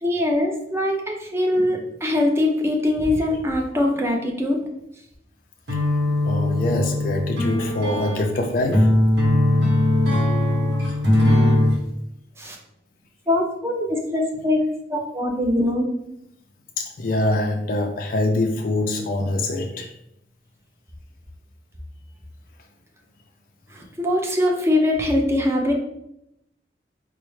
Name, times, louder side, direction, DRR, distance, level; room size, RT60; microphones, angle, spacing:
voice 1, 0.0-4.6 12.4-12.6 13.3-14.6 14.9-15.9 23.7-25.7, left 1 dB, 15° right, 0 dB, 0.5 m, -22 dB
sound 1, 5.7-11.8, left 1 dB, 70° right, 1.0 m, -20 dB
voice 2, 6.2-8.9 16.8-19.9, left 2 dB, 50° left, 2 dB, 0.3 m, -24 dB
4.1 x 2.0 x 3.1 m, 0.82 s
head